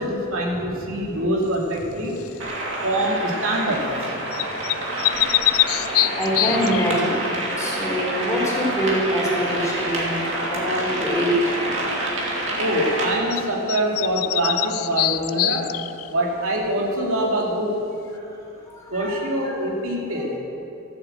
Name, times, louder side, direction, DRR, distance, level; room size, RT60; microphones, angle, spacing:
voice 1, 0.0-2.2 2.8-3.9 12.6-15.7 16.1-17.8 18.9-20.3, right 1 dB, 80° right, -1 dB, 2.5 m, -24 dB
sound 1, 2.2-2.5 4.3-6.9 13.3-13.4 13.7-16.1, left 16 dB, 85° left, 0.4 m, -24 dB
sound 2, 2.4-13.0, right 1 dB, 60° right, 2.5 m, -27 dB
voice 2, 6.2-7.1 7.6-11.5 18.1-18.3 18.7-19.6 20.1-20.2, equal, 15° left, -4 dB, 3.3 m, -25 dB
14.0 x 8.2 x 7.8 m, 2.9 s
head